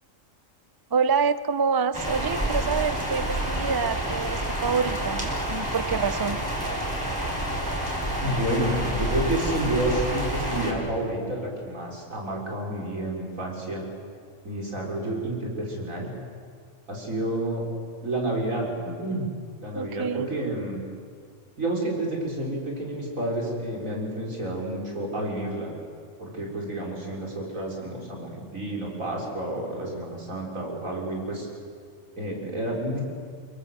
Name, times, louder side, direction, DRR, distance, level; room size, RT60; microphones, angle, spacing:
voice 1, 0.9-6.4 19.7-20.3, right 5 dB, 30° right, 14 dB, 0.4 m, -27 dB
sound 1, 1.9-10.7, right 1 dB, 15° right, 4.2 m, -28 dB
voice 2, 8.2-13.8 14.4-16.1 16.9-17.6 18.0-19.3 19.6-20.8 21.6-25.7 26.2-31.5 32.2-33.0, right 1 dB, 85° right, -1 dB, 5.0 m, -30 dB
24.5 x 22.0 x 7.6 m, 2.1 s
omnidirectional pair, 1.4 m